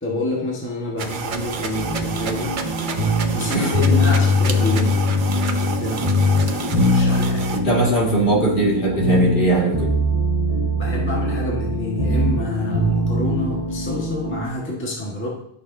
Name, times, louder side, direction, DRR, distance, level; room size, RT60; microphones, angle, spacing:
voice 1, 0.0-2.6 3.2-5.2 5.8-7.5 10.7-15.3, left 2 dB, 10° left, -3 dB, 1.3 m, -28 dB
sound 1, 1.0-7.6, right 5 dB, 50° right, 0.7 m, -29 dB
sound 2, 1.7-14.4, left 1 dB, 15° right, 1.3 m, -21 dB
voice 2, 7.5-10.0, right 2 dB, 40° left, -3 dB, 2.1 m, -20 dB
11.5 x 6.5 x 2.7 m, 0.73 s
omnidirectional pair, 1.4 m